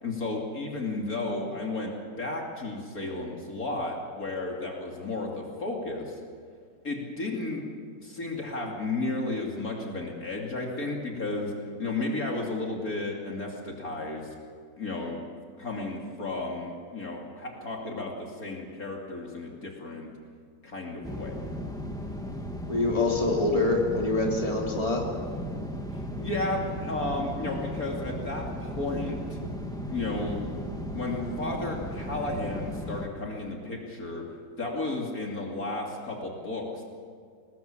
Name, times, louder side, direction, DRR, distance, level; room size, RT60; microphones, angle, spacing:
voice 1, 0.0-6.2 6.8-7.6 8.0-14.3 14.8-15.2 15.6-20.1 20.6-21.4 25.9-29.4 29.9-30.4 30.9-34.2 34.6-36.8, left 2 dB, 50° left, -1 dB, 3.2 m, -33 dB
sound 1, 21.0-33.1, equal, ahead, 1.8 m, -36 dB
voice 2, 22.7-25.0, left 2 dB, 20° left, -1 dB, 3.2 m, -25 dB
24.0 x 19.5 x 7.4 m, 2.2 s
omnidirectional pair, 2.0 m